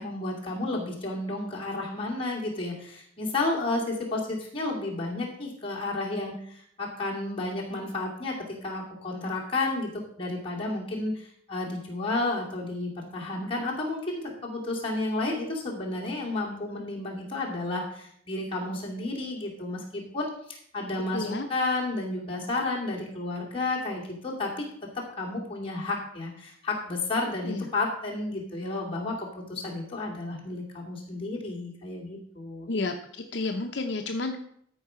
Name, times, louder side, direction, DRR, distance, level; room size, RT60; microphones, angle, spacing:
voice 1, 0.0-24.6 24.9-32.7, left 2 dB, 30° left, -3 dB, 2.5 m, -32 dB
voice 2, 21.1-21.5 27.5-27.6 32.7-32.9 33.3-34.4, left 3 dB, 65° left, 4 dB, 0.7 m, -30 dB
13.0 x 4.8 x 5.6 m, 0.66 s
head